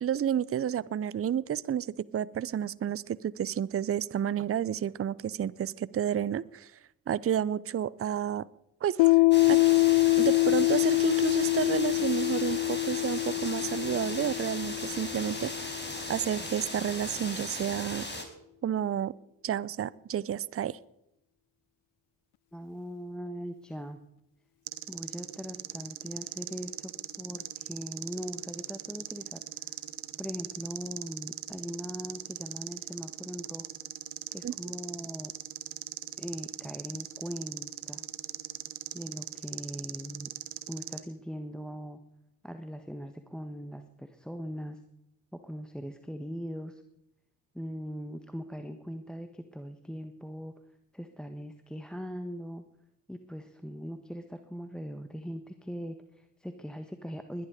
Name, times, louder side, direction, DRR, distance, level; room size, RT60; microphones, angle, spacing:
voice 1, 0.0-6.7 7.1-8.5 8.8-9.2 9.5-9.6 10.2-15.8 16.1-18.1 18.6-19.1 19.4-20.8 34.4-34.5, right 9 dB, 30° right, 21 dB, 0.6 m, -31 dB
Piano, 9.0-16.2, left 24 dB, 65° left, 0.5 m, -25 dB
sound 1, 9.3-18.2, left 1 dB, 20° left, 4.6 m, -38 dB
voice 2, 22.5-24.0 24.9-26.9 27.2-29.8 30.2-33.7 34.3-35.3 36.2-38.0 38.9-40.3 40.7-42.0 42.4-44.8 45.3-46.8 47.5-50.5 50.9-52.6 53.1-57.5, equal, ahead, 7 dB, 1.4 m, -40 dB
sound 2, 24.7-41.0, right 14 dB, 70° right, 1.4 m, -40 dB
21.0 x 11.0 x 5.1 m, 0.83 s
hypercardioid pair, 45°, 48 cm